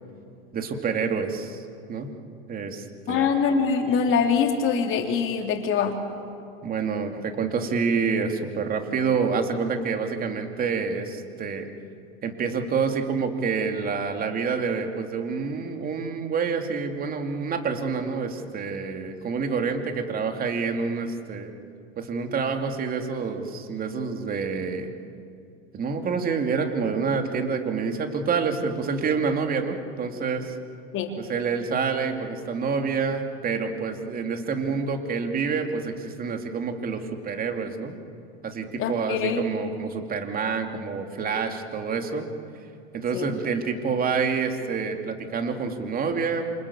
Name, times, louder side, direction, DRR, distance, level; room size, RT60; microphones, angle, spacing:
voice 1, 0.5-1.6 1.9-2.1 2.5-3.4 6.6-11.7 12.2-21.5 22.0-24.9 25.7-30.6 31.2-38.0 38.4-42.3 42.9-46.5, right 5 dB, 25° right, 5 dB, 2.9 m, -27 dB
voice 2, 3.1-6.0 30.9-31.1 38.8-39.4 43.1-43.3, left 6 dB, 40° left, 3 dB, 3.6 m, -24 dB
27.5 x 26.0 x 7.3 m, 2.5 s
hypercardioid pair, 110°, 32 cm